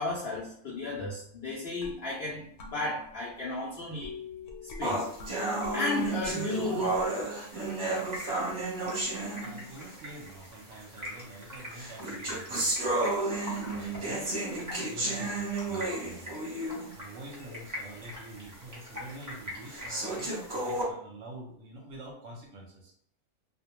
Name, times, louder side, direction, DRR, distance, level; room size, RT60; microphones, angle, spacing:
voice 1, 0.0-4.2 4.6-5.1 5.7-6.9, left 2 dB, 70° left, -5 dB, 0.6 m, -34 dB
sound 1, 1.8-7.2, left 5 dB, 85° left, 1.1 m, -45 dB
sound 2, 4.8-10.0 10.8-10.9 11.7-17.0 17.4-17.5 18.0-18.1 18.8-18.9 19.7-20.8, right 2 dB, 40° right, 0.9 m, -32 dB
voice 2, 6.5-6.9 7.5-7.8 9.4-13.2 13.7-16.3 16.9-22.9, right 2 dB, 65° right, -1 dB, 0.9 m, -47 dB
Stream, 7.5-20.9, left 1 dB, 20° right, 0.5 m, -45 dB
2.4 x 2.2 x 2.9 m, 0.67 s
omnidirectional pair, 1.6 m